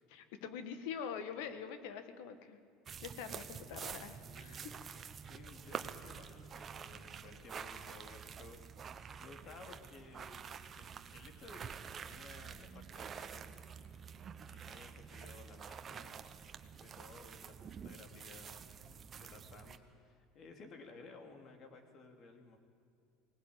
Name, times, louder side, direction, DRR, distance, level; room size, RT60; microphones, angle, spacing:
voice 1, 0.1-2.6 3.0-4.6, left 7 dB, 80° left, 9 dB, 1.7 m, -44 dB
sound 1, 2.9-19.8, right 7 dB, 35° right, 1.1 m, -48 dB
voice 2, 4.2-8.6 9.2-11.7 12.1-13.5 14.1-16.3 16.7-22.6, left 3 dB, 45° left, 4 dB, 3.2 m, -56 dB
19.5 x 19.0 x 8.9 m, 2.4 s
supercardioid pair, 115°, 0 cm